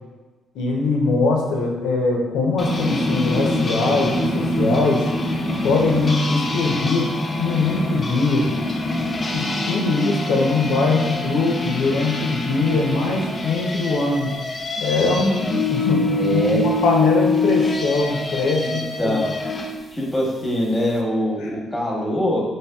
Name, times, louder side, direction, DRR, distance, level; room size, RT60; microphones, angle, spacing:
voice 1, 0.5-5.1 5.6-7.1 7.4-8.4 9.3-14.3 14.8-19.2 21.4-21.6, left 3 dB, 85° left, 0 dB, 0.6 m, -21 dB
sound 1, 2.6-19.7, left 2 dB, 30° left, 0.4 m, -25 dB
voice 2, 16.1-16.6 18.6-19.3 19.9-22.4, left 1 dB, 15° left, -2 dB, 1.0 m, -23 dB
4.2 x 3.1 x 2.3 m, 1.3 s
cardioid pair, 90°, 0 cm